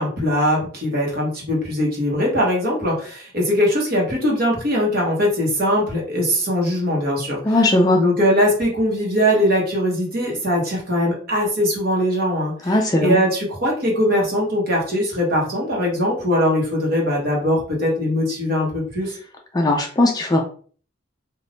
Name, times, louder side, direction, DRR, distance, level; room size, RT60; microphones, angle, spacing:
voice 1, 0.0-7.6 7.9-19.1, equal, 50° right, -2 dB, 1.2 m, -21 dB
voice 2, 7.4-8.0 12.7-13.2 19.5-20.4, left 2 dB, 20° left, 2 dB, 0.3 m, -18 dB
2.5 x 2.5 x 3.3 m, 0.44 s
head